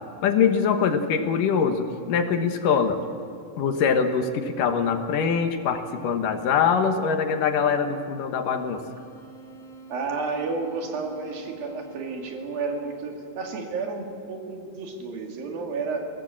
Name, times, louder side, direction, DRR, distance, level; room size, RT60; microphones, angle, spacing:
voice 1, 0.2-3.0 3.6-8.8, left 6 dB, 75° left, 6 dB, 2.8 m, -23 dB
sound 1, 8.3-13.2, right 2 dB, ahead, 4.3 m, -46 dB
voice 2, 9.9-16.1, right 4 dB, 85° right, 2 dB, 4.1 m, -31 dB
22.5 x 17.0 x 7.5 m, 2.7 s
omnidirectional pair, 4.0 m